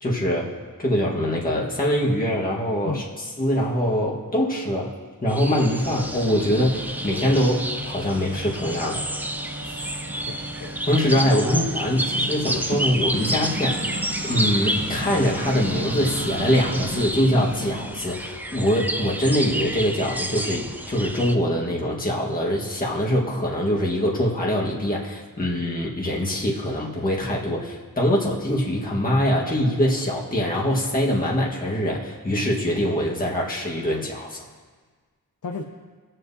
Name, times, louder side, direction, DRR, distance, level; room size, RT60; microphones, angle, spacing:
voice 1, 0.0-4.9 5.2-9.1 10.9-34.5, equal, 25° left, -4 dB, 1.5 m, -23 dB
sound 1, 5.3-21.4, right 1 dB, 5° right, 0.5 m, -30 dB
sound 2, 5.6-19.2, right 2 dB, 35° right, 0.9 m, -35 dB
voice 2, 9.6-11.9 35.4-35.6, left 4 dB, 65° left, 3 dB, 0.7 m, -36 dB
19.0 x 7.7 x 2.8 m, 1.5 s
wide cardioid pair, 100°, 34 cm